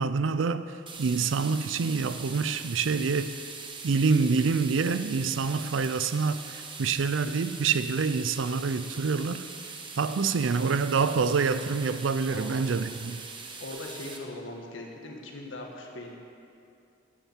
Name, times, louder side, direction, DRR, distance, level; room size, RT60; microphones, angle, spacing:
voice 1, 0.0-3.4 3.8-9.4 10.0-13.2, right 5 dB, 80° right, 0.5 m, -26 dB
sound 1, 0.9-14.2, right 4 dB, 25° right, 0.8 m, -42 dB
voice 2, 13.6-16.2, left 2 dB, 85° left, 1.4 m, -40 dB
8.8 x 7.3 x 7.2 m
head